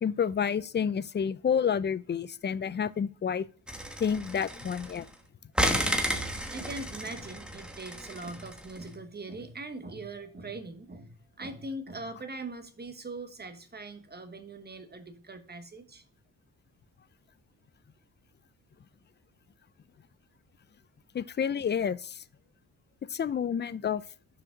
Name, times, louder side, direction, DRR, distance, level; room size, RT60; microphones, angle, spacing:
voice 1, 0.0-3.5 4.0-5.1 21.1-22.2 23.1-24.0, left 7 dB, 30° left, 0.4 m, -29 dB
sound 1, 3.7-5.1 5.6-8.8, equal, 5° right, 1.2 m, -32 dB
voice 2, 6.1-16.0, right 2 dB, 25° right, 1.2 m, -41 dB
6.2 x 5.0 x 5.8 m
wide cardioid pair, 115°, 36 cm